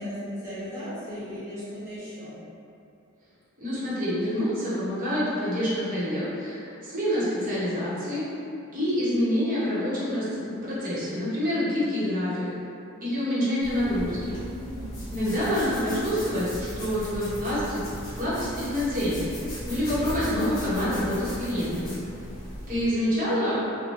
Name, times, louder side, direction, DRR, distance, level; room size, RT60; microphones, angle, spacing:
voice 1, 0.0-2.4 14.5-15.3, equal, 15° right, -13 dB, 1.0 m, -37 dB
voice 2, 3.6-8.3 8.7-12.5 13.0-14.4 15.1-17.8 18.2-19.2 19.7-22.0 22.7-23.7, equal, 40° right, -10 dB, 0.9 m, -27 dB
sound 1, 13.6-22.9, equal, 45° left, 0.9 m, -37 dB
3.0 x 2.2 x 2.5 m, 2.6 s
head